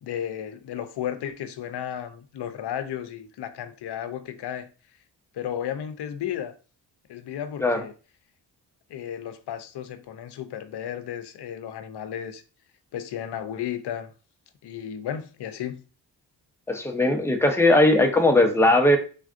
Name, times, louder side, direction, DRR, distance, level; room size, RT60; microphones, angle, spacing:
voice 1, 0.0-4.7 5.3-6.5 7.1-7.9 8.9-12.4 12.9-14.1 14.6-15.8, left 10 dB, 65° left, 0.6 m, -33 dB
voice 2, 16.7-19.0, left 1 dB, 5° left, 0.7 m, -19 dB
3.5 x 2.4 x 2.5 m
cardioid pair, 55°, 43 cm